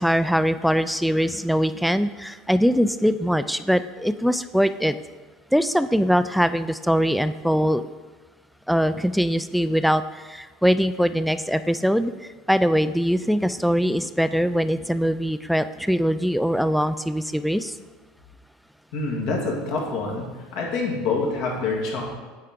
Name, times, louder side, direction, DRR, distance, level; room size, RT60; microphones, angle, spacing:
voice 1, 0.0-5.0 5.5-7.8 8.7-12.1 12.5-17.7, equal, ahead, 12 dB, 0.3 m, -22 dB
voice 2, 18.9-22.1, left 3 dB, 65° left, -2 dB, 1.8 m, -26 dB
8.5 x 4.5 x 3.7 m, 1.3 s
hypercardioid pair, 90°, 0 cm